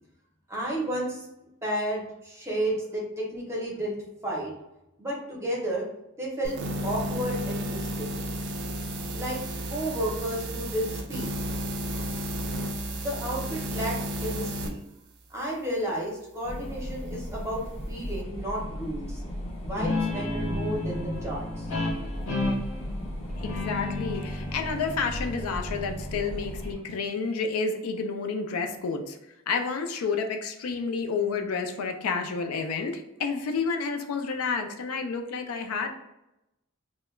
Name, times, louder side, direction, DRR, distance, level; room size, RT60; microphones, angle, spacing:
voice 1, 0.5-1.3 1.6-3.0 3.3-4.0 4.2-4.5 5.0-5.9 6.2-6.6 6.8-8.2 9.1-9.4 9.7-11.3 12.8-14.8 15.3-17.6 17.9-19.2 19.6-21.7, right 1 dB, 10° right, -4 dB, 0.6 m, -32 dB
sound 1, 6.4-14.7, right 1 dB, 50° right, 0.3 m, -32 dB
sound 2, 16.4-26.7, equal, 30° left, 0.6 m, -37 dB
Guitar, 19.7-26.9, left 2 dB, 65° left, 0.7 m, -32 dB
voice 2, 23.4-29.2 29.5-35.9, left 5 dB, 85° left, 5 dB, 0.4 m, -30 dB
2.2 x 2.0 x 3.0 m, 0.88 s
head